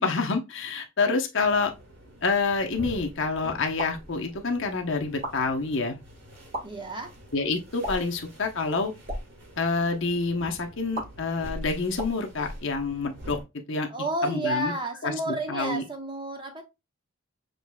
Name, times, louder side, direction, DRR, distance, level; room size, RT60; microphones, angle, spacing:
voice 1, 0.0-1.7 2.2-6.0 7.3-8.9 9.6-13.4 13.7-13.9 14.2-14.7 15.0-15.8, left 4 dB, 60° left, 0.9 m, -27 dB
sound 1, 1.4-13.4, equal, 60° right, 2.3 m, -46 dB
sound 2, 3.8-4.1 5.1-5.4 6.4-6.6 7.8-8.2 8.9-9.3 10.9-11.1 11.9-13.1, right 1 dB, 40° right, 1.5 m, -35 dB
voice 2, 6.6-7.2 13.9-16.6, right 1 dB, 20° right, 1.1 m, -31 dB
6.7 x 3.2 x 2.3 m
head